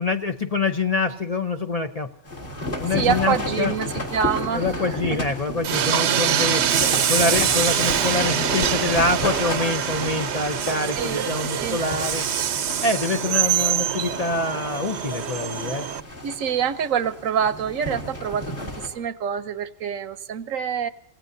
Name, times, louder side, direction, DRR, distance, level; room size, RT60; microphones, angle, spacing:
voice 1, 0.0-2.1 2.8-3.7 4.5-6.7 7.1-12.2 12.8-15.9, left 3 dB, 35° left, 6 dB, 0.7 m, -25 dB
sound 1, 2.2-18.9, left 1 dB, 55° left, 3.6 m, -33 dB
voice 2, 2.9-5.2 10.8-11.8 16.2-20.9, right 8 dB, 80° right, 13 dB, 1.2 m, -26 dB
Train, 5.6-16.0, right 9 dB, 60° right, 0.9 m, -24 dB
28.0 x 16.5 x 2.7 m, 0.75 s
omnidirectional pair, 1.4 m